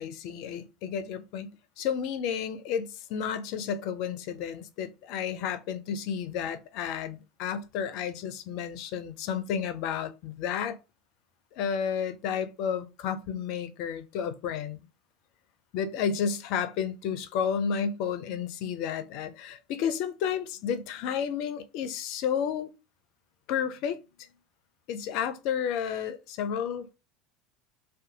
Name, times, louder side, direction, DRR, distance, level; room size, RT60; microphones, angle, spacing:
voice 1, 0.0-10.8 11.5-14.8 15.7-22.7 23.5-24.0 24.9-26.9, left 7 dB, 60° left, 0.4 m, -31 dB
2.6 x 2.3 x 3.8 m
hypercardioid pair, 75°, 0 cm